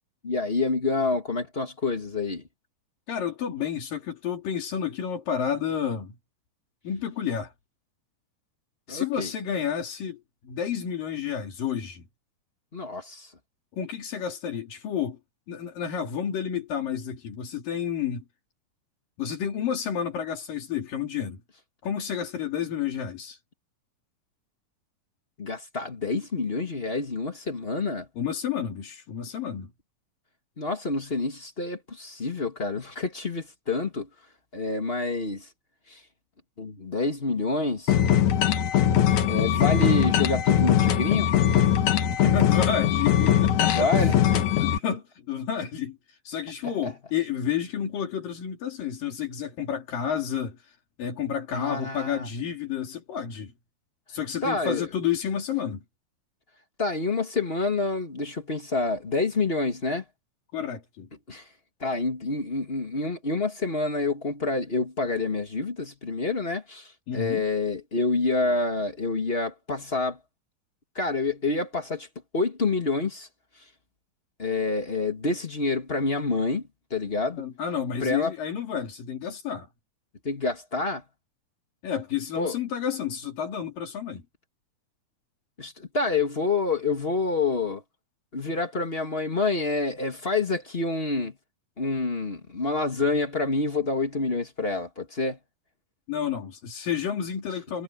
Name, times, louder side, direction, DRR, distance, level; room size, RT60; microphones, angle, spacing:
voice 1, 0.2-2.4 8.9-9.3 12.7-13.3 25.4-28.1 30.6-34.1 34.5-35.5 35.9-36.0 36.6-37.9 39.3-41.3 43.7-44.4 46.6-46.9 51.5-52.3 54.4-54.9 56.8-60.0 61.3-61.4 61.8-70.2 70.9-72.1 72.3-73.3 74.4-77.4 78.0-78.3 80.2-81.0 82.3-82.5 85.6-87.8 88.3-91.3 91.8-95.4, left 3 dB, 25° left, 1.4 m, -28 dB
voice 2, 3.1-6.2 6.8-7.5 8.9-12.0 13.7-15.2 15.5-18.2 19.2-21.4 21.8-23.4 28.2-29.7 42.1-43.9 44.3-46.0 46.2-50.6 51.0-53.5 54.1-55.8 60.5-61.1 67.1-67.4 77.4-79.7 81.8-84.2 96.1-97.8, left 8 dB, 85° left, 4.8 m, -30 dB
sound 1, 37.9-44.8, left 10 dB, 65° left, 2.7 m, -21 dB
omnidirectional pair, 3.8 m